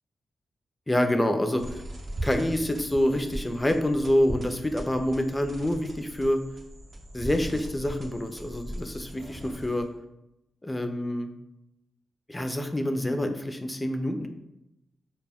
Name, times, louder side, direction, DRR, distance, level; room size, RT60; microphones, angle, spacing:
voice 1, 0.9-1.8 2.2-6.4 7.1-9.9 10.6-11.3 12.3-14.3, left 1 dB, 15° left, 6 dB, 0.3 m, -27 dB
sound 1, 1.6-10.0, right 1 dB, 55° right, 0.5 m, -39 dB
2.1 x 2.1 x 3.4 m, 0.88 s
cardioid pair, 75°, 0 cm